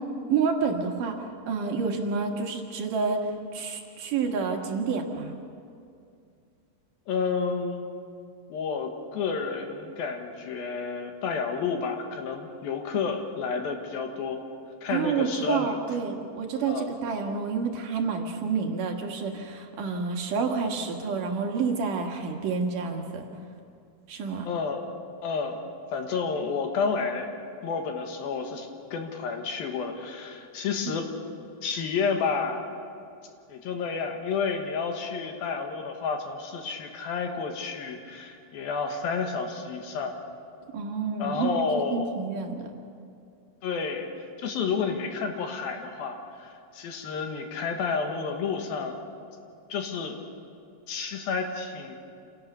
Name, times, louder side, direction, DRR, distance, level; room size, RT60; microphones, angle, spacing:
voice 1, 0.3-5.3 14.9-23.3 24.1-24.5 30.9-31.0 40.7-42.7, right 5 dB, 60° right, 2 dB, 2.8 m, -29 dB
voice 2, 7.1-7.9 8.5-14.4 14.8-15.7 16.7-16.9 24.4-24.9 25.2-27.3 27.6-31.1 31.6-32.7 33.5-40.2 41.2-42.1 43.6-49.0 49.7-50.2 50.9-52.0, left 5 dB, 70° left, 4 dB, 3.2 m, -30 dB
27.0 x 17.5 x 6.9 m, 2.4 s
omnidirectional pair, 4.6 m